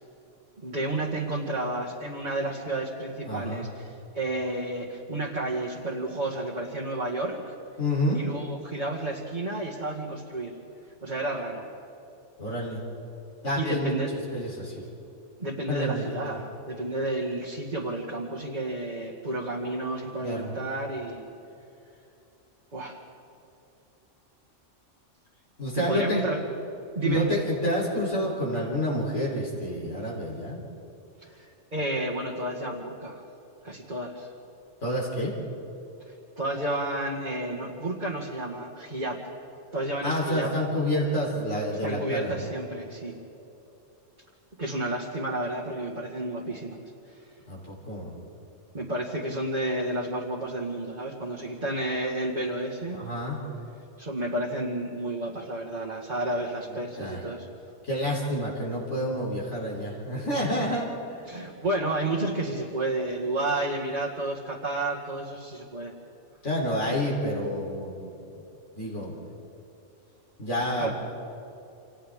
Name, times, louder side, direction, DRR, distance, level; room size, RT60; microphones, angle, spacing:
voice 1, 0.6-7.4 8.1-10.5 11.0-11.7 13.6-14.1 15.4-21.3 22.7-23.0 25.7-26.4 26.9-27.4 31.2-33.2 33.6-34.3 36.1-39.2 39.7-40.5 41.8-43.2 44.6-46.8 48.7-53.0 54.0-57.5 61.3-65.9 70.8-70.9, right 2 dB, 35° right, -4 dB, 2.1 m, -31 dB
voice 2, 3.3-3.7 7.8-8.2 12.4-12.9 13.4-14.7 15.7-16.3 20.2-20.5 25.6-26.2 27.0-30.6 34.8-35.3 40.0-42.5 47.5-48.1 52.9-53.4 57.0-57.3 57.9-61.2 66.4-68.1 68.8-69.2 70.4-70.9, left 1 dB, 75° left, -4 dB, 4.2 m, -29 dB
28.5 x 28.0 x 3.7 m, 2.8 s
omnidirectional pair, 1.3 m